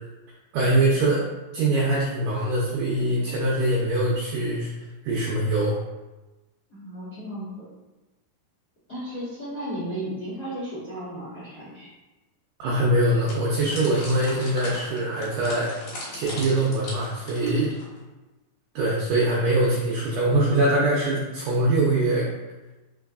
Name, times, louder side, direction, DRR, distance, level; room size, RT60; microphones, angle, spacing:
voice 1, 0.5-1.2 1.5-4.7 5.0-5.8 12.6-15.7 16.1-17.7 18.8-22.3, right 1 dB, 80° right, -4 dB, 1.9 m, -23 dB
voice 2, 6.7-7.7 8.9-11.9, right 1 dB, 85° left, -12 dB, 0.8 m, -34 dB
sound 1, 13.3-18.0, left 1 dB, 55° left, 2.1 m, -38 dB
4.6 x 4.3 x 2.4 m, 1.1 s
omnidirectional pair, 4.4 m